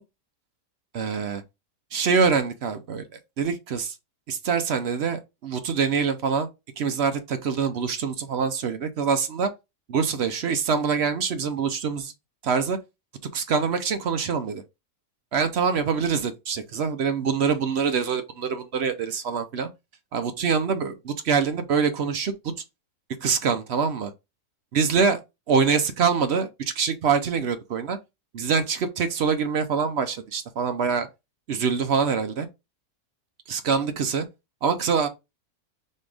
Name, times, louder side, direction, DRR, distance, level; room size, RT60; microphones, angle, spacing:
voice 1, 0.9-1.4 1.9-3.1 3.4-3.9 4.3-6.5 6.8-9.5 9.9-12.1 12.4-12.8 13.3-14.6 15.3-19.7 20.1-22.3 23.2-24.1 24.7-25.2 25.5-26.5 26.8-28.0 28.3-31.1 31.5-32.5 33.5-34.3 34.6-35.1, right 6 dB, 60° right, 0.8 m, -24 dB
4.3 x 3.6 x 3.3 m
omnidirectional pair, 1.6 m